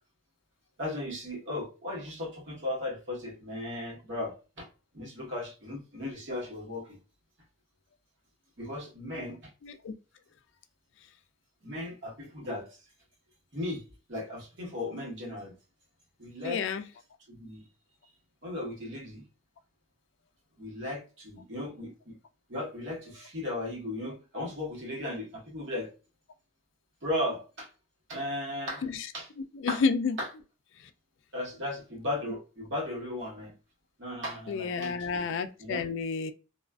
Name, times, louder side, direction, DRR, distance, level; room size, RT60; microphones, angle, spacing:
voice 1, 0.8-4.7 4.9-7.0 8.6-9.5 11.6-12.8 13.5-13.8 14.1-15.5 16.2-16.6 17.3-17.6 18.4-19.2 20.6-22.2 22.5-25.9 27.0-27.7 28.1-28.8 29.1-29.3 29.7-29.8 30.2-30.3 31.3-33.5 34.0-35.2 35.6-35.9, left 1 dB, 60° right, 1.0 m, -36 dB
voice 2, 9.6-9.9 16.4-16.8 28.8-29.1 29.5-30.2 34.5-36.3, left 5 dB, 60° left, 0.3 m, -30 dB
2.3 x 2.3 x 2.2 m
head